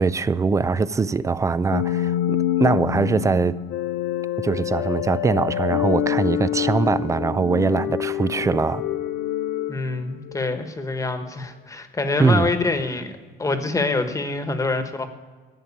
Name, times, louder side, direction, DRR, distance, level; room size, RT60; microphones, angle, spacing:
voice 1, 0.0-3.6 4.4-8.8 12.2-12.5, right 4 dB, 20° right, 0.4 m, -22 dB
sound 1, 1.7-10.7, left 11 dB, 80° left, 0.6 m, -26 dB
voice 2, 9.7-13.1 13.4-15.1, left 3 dB, 20° left, 1.3 m, -25 dB
11.0 x 7.7 x 8.5 m
cardioid pair, 110°, 17 cm